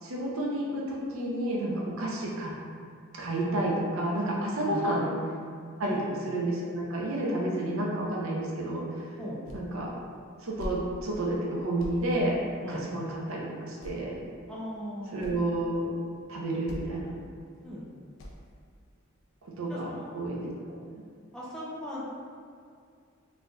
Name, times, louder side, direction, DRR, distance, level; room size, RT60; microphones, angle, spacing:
voice 1, 0.0-2.5 3.1-5.2 5.8-8.8 9.5-9.9 10.4-12.4 12.7-14.2 15.1-15.9 16.3-17.1 19.6-20.4, right 1 dB, 85° right, -3 dB, 0.6 m, -30 dB
voice 2, 5.8-6.1 9.2-9.4 12.6-12.8 14.5-15.2 17.6-17.9 19.7-20.1 21.3-22.0, equal, 5° left, -8 dB, 0.5 m, -38 dB
sound 1, 9.4-9.8 10.1-10.8 11.2-11.4 11.8-12.0 13.2-13.3 13.8-14.2 14.7-14.8 15.0-15.4 16.1-16.3 16.6-17.0 17.4-17.6 18.2-18.5, equal, 70° left, 0.4 m, -41 dB
4.0 x 2.7 x 2.3 m, 2.2 s
head